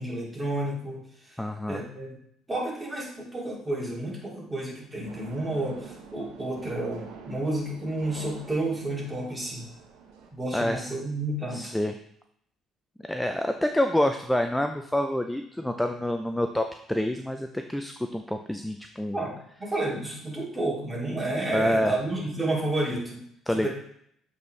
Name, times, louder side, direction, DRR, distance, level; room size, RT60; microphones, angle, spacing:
voice 1, 0.0-2.1 2.5-9.6 10.3-11.7 19.1-23.2 23.5-23.7, right 1 dB, 15° right, -4 dB, 2.7 m, -31 dB
voice 2, 1.4-1.8 10.5-10.9 11.5-11.9 13.1-19.2 21.5-21.9 23.5-23.7, left 1 dB, 5° left, 6 dB, 0.4 m, -27 dB
sound 1, 5.0-10.3, right 5 dB, 80° right, 1.0 m, -45 dB
8.0 x 4.2 x 3.2 m, 0.68 s
supercardioid pair, 80°, 0 cm